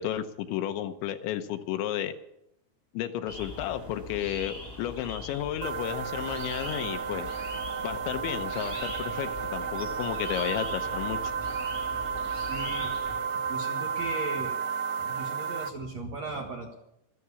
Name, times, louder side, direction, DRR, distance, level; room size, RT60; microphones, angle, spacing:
voice 1, 0.0-2.1 2.9-7.3 7.8-11.2, left 11 dB, 80° left, 8 dB, 3.1 m, -32 dB
sound 1, 3.3-13.2, left 2 dB, 5° left, 5.6 m, -42 dB
sound 2, 5.6-15.7, right 6 dB, 80° right, 2.4 m, -32 dB
voice 2, 12.3-12.9 13.4-14.6 15.0-16.8, right 2 dB, 55° right, 0 dB, 1.9 m, -37 dB
14.5 x 13.5 x 7.0 m, 0.82 s
omnidirectional pair, 5.4 m